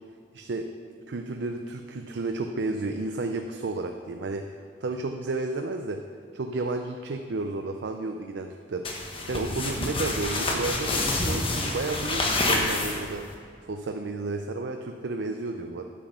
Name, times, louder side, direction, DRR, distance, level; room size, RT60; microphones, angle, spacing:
voice 1, 0.3-0.7 1.1-4.4 4.8-6.0 6.3-8.9 9.3-13.2 13.7-15.8, right 3 dB, 85° right, 5 dB, 0.5 m, -32 dB
sound 1, 8.8-13.3, left 2 dB, 30° left, 1.2 m, -28 dB
9.6 x 6.1 x 6.6 m, 2.2 s
head